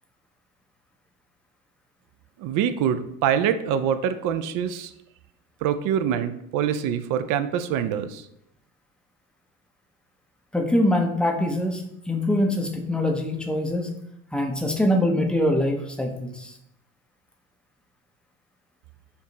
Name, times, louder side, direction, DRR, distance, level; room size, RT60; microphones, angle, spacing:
voice 1, 2.4-4.9 5.6-8.2, right 8 dB, 50° right, 10 dB, 0.5 m, -25 dB
voice 2, 10.5-13.9 14.3-16.6, left 1 dB, ahead, 3 dB, 0.6 m, -24 dB
4.6 x 2.4 x 3.9 m, 0.77 s
hypercardioid pair, 75°, 43 cm